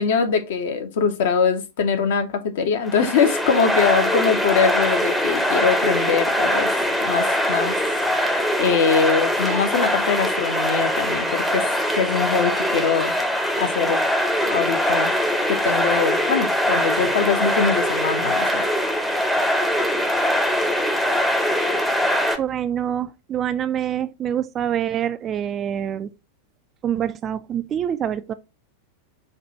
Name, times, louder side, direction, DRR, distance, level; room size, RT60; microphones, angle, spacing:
voice 1, 0.0-6.7 7.0-7.8 8.6-11.7 11.9-13.1 13.6-14.0 14.5-15.1 15.5-18.6, left 6 dB, 55° left, 0.8 m, -22 dB
sound 1, 2.9-22.4, equal, 5° left, 0.7 m, -22 dB
voice 2, 22.4-26.1 26.8-28.3, right 9 dB, 30° right, 0.3 m, -25 dB
4.7 x 2.4 x 4.0 m
figure-of-eight pair, 90°, 0 cm